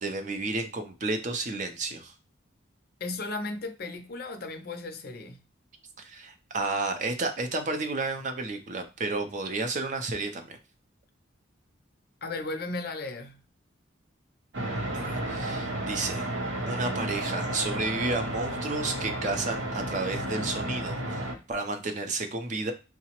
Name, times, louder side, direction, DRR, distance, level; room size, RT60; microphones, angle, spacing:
voice 1, 0.0-2.1 6.0-10.6 14.9-16.3 16.7-22.7, right 3 dB, 40° right, 0.4 m, -32 dB
voice 2, 3.0-5.4 12.2-13.4, left 2 dB, 50° left, 0.5 m, -35 dB
sound 1, 14.5-21.3, right 1 dB, 70° right, 0.7 m, -32 dB
4.6 x 2.0 x 2.9 m
head